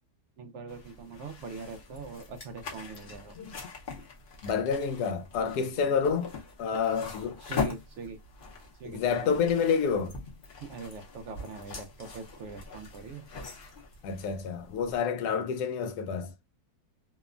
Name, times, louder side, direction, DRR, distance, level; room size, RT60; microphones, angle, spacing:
voice 1, 0.4-3.4 5.8-6.0 7.4-8.2 8.8-9.4 10.6-13.2, right 4 dB, 70° right, 0.7 m, -42 dB
sound 1, 0.7-15.0, left 5 dB, 50° left, 0.7 m, -41 dB
voice 2, 4.4-6.3 6.6-7.4 8.8-10.1 14.0-16.3, left 6 dB, 90° left, 1.1 m, -28 dB
2.9 x 2.1 x 2.3 m
omnidirectional pair, 1.6 m